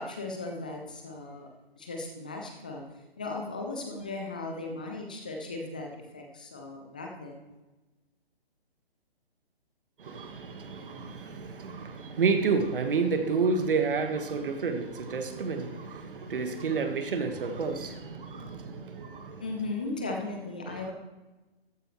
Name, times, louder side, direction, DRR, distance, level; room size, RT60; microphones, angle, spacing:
voice 1, 0.0-1.5 1.8-2.8 3.2-7.4 19.4-20.9, left 2 dB, 10° left, 2 dB, 0.4 m, -37 dB
voice 2, 10.0-19.4 20.7-20.8, right 4 dB, 60° right, 7 dB, 1.5 m, -30 dB
14.0 x 10.0 x 3.1 m, 1.1 s
figure-of-eight pair, 140°, 31 cm